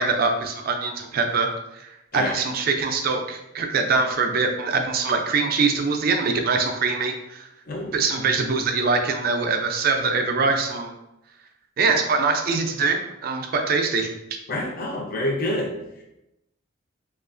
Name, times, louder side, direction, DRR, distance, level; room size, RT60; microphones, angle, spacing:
voice 1, 0.0-7.5 7.9-10.9 11.8-14.1, right 4 dB, 45° right, 4 dB, 0.3 m, -23 dB
voice 2, 14.5-15.7, left 1 dB, 45° left, -1 dB, 0.5 m, -27 dB
2.9 x 2.4 x 2.4 m, 0.90 s
head